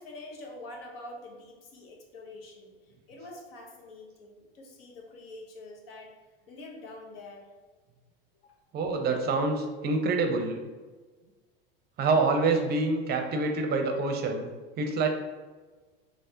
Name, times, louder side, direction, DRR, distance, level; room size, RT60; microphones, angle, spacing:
voice 1, 0.0-2.7 3.1-6.1 6.5-7.5 8.4-8.6, left 2 dB, 75° left, 1 dB, 0.9 m, -45 dB
voice 2, 8.7-10.6 12.0-14.5 14.8-15.1, right 3 dB, 35° right, 4 dB, 0.5 m, -26 dB
3.2 x 3.1 x 2.8 m, 1.3 s
hypercardioid pair, 105°, 30 cm